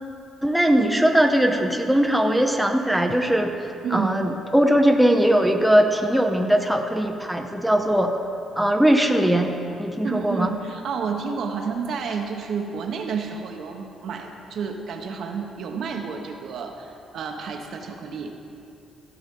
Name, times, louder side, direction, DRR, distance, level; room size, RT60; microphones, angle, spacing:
voice 1, 0.4-3.6 3.9-8.1 8.6-10.5, right 1 dB, ahead, 4 dB, 0.8 m, -20 dB
voice 2, 3.8-4.2 10.0-18.3, right 6 dB, 65° right, 3 dB, 1.1 m, -30 dB
15.0 x 6.1 x 5.4 m, 2.7 s
cardioid pair, 100°, 0 cm